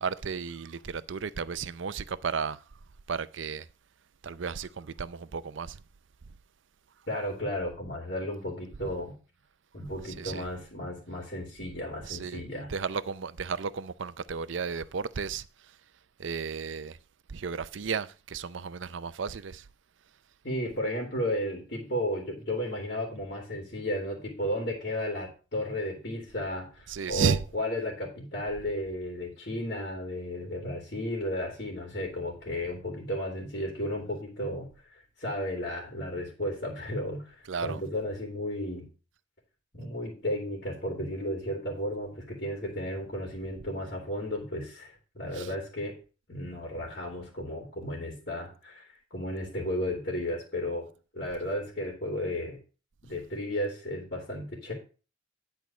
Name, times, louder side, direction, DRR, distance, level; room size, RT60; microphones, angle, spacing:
voice 1, 0.0-2.6 3.1-3.6 4.2-5.8 10.2-10.4 12.1-12.4 12.7-15.4 16.2-17.0 17.3-19.6 26.9-27.4 37.5-37.8 45.4-45.5, right 5 dB, 75° right, 0.5 m, -33 dB
voice 2, 7.1-9.1 9.7-12.7 20.4-34.9 35.2-38.9 39.7-45.9 46.3-50.9 51.1-52.6 53.1-54.7, left 1 dB, 55° left, 2.8 m, -34 dB
10.5 x 4.6 x 6.1 m
head